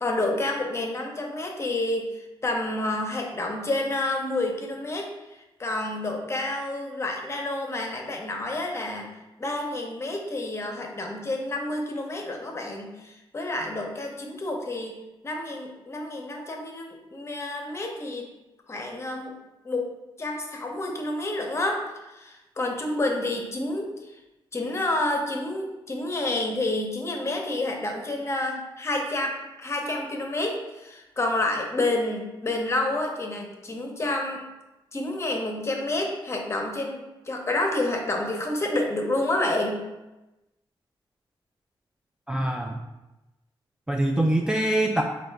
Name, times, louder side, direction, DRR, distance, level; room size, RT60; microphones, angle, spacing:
voice 1, 0.0-9.1 9.4-18.3 18.7-19.3 19.6-19.9 20.2-21.8 22.1-23.9 24.5-34.4 34.9-39.9, left 2 dB, 30° left, 2 dB, 0.7 m, -29 dB
voice 2, 42.3-42.8 43.9-45.0, right 1 dB, 10° right, 1 dB, 0.3 m, -24 dB
3.6 x 2.6 x 4.4 m, 1.0 s
cardioid pair, 95°, 9 cm